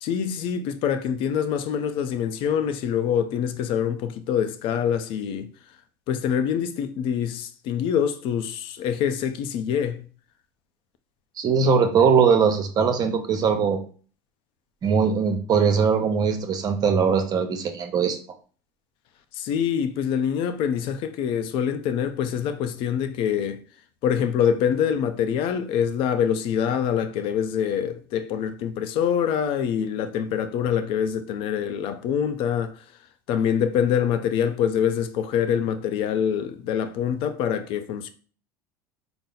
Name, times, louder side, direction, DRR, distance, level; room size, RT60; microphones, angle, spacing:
voice 1, 0.0-5.5 6.1-10.0 19.3-23.6 24.0-32.8 33.3-38.1, left 8 dB, 55° left, 0.5 m, -25 dB
voice 2, 11.4-13.8 14.8-18.2, right 6 dB, 40° right, 0.7 m, -21 dB
4.2 x 2.0 x 3.8 m
supercardioid pair, 100°, 10 cm